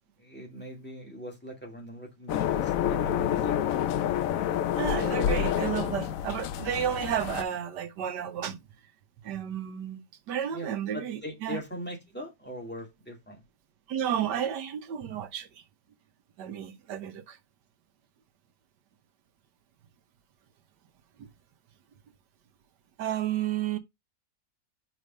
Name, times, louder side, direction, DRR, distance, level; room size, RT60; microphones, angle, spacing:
voice 1, 0.2-3.6 10.5-13.4, equal, 5° left, 2.1 m, -41 dB
sound 1, 2.3-7.4, left 10 dB, 70° left, 0.9 m, -28 dB
voice 2, 4.7-8.6 9.2-11.6 13.9-15.5 16.4-17.4 21.2-21.3 23.0-23.8, right 10 dB, 90° right, 1.5 m, -32 dB
5.0 x 4.2 x 5.2 m
omnidirectional pair, 1.8 m